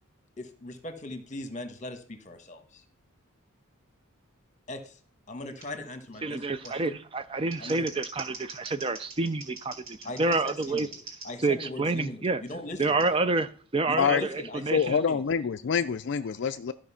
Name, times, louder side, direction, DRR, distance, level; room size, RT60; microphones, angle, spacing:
voice 1, 0.4-2.8 4.7-5.0 5.3-7.0 7.6-7.9 10.0-13.0 13.9-15.2, left 1 dB, 35° left, 1.3 m, -40 dB
Scissors, 5.6-5.7 6.6-6.7 7.3-11.3 12.8-13.1, right 3 dB, 65° right, 4.1 m, -44 dB
voice 2, 6.2-10.9 11.4-12.4 12.8-15.0, right 3 dB, 25° right, 0.4 m, -28 dB
voice 3, 14.7-16.7, left 6 dB, 55° left, 0.4 m, -26 dB
13.0 x 5.1 x 5.6 m
head